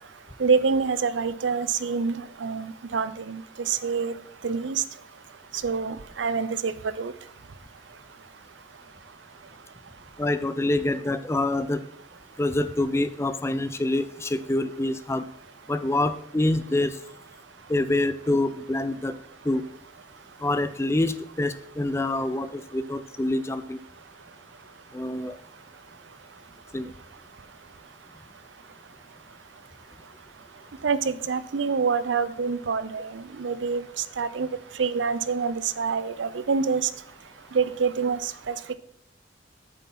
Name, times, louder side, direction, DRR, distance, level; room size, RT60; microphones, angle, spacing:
voice 1, 0.4-2.1 2.4-3.4 3.7-4.1 4.4-4.8 5.6-6.7 7.0-7.1 30.8-33.1 33.4-33.8 34.2-34.5 34.8-36.9 37.5-38.2 38.5-38.6, right 5 dB, 75° right, 15 dB, 0.5 m, -26 dB
voice 2, 10.2-11.8 12.4-15.2 15.7-16.9 17.7-19.2 19.5-19.6 20.4-23.8 24.9-25.4 26.7-26.9, left 2 dB, 15° left, 12 dB, 0.4 m, -26 dB
8.2 x 7.2 x 4.2 m, 0.67 s
head